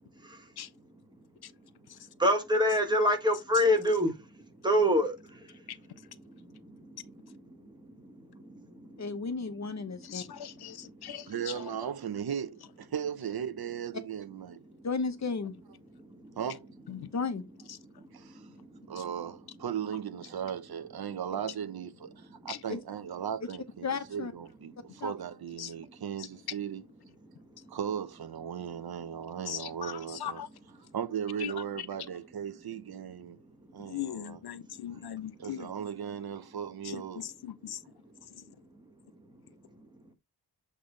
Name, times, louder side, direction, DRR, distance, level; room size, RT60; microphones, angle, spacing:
voice 1, 2.2-4.1 4.6-5.1, equal, 10° right, 1.5 m, -24 dB
voice 2, 9.0-10.3 14.8-15.5 17.1-17.4 22.7-22.8 23.8-24.3 25.0-25.1, left 4 dB, 40° left, 1.0 m, -33 dB
voice 3, 10.0-11.7 16.9-17.1 19.0-19.1 22.5-22.6 25.6-25.7 26.2-26.3 29.5-30.5 31.4-31.9 33.8-35.7 36.8-37.8 38.3-38.4, left 11 dB, 65° left, 0.6 m, -40 dB
voice 4, 11.3-14.6 16.4-16.7 18.1-18.4 18.9-26.8 27.7-30.4 30.9-33.4 33.7-34.4 35.4-37.3, right 8 dB, 65° right, 0.9 m, -37 dB
7.8 x 3.3 x 3.9 m
wide cardioid pair, 145°, 40 cm